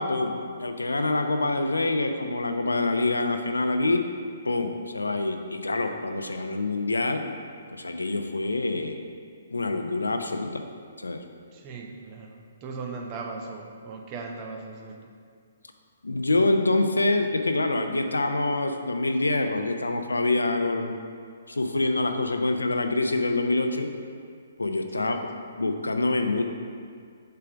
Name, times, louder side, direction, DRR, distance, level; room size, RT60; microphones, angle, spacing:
voice 1, 0.0-4.0 4.4-7.3 7.8-9.0 9.5-10.6 11.0-11.2 16.0-20.9 21.5-23.9 24.6-25.2 25.6-26.4, left 2 dB, 80° left, 6 dB, 0.5 m, -26 dB
voice 2, 11.5-15.1 25.0-25.2, right 4 dB, 30° right, 2 dB, 0.7 m, -38 dB
6.8 x 3.4 x 5.0 m, 2.2 s
figure-of-eight pair, 130°, 0 cm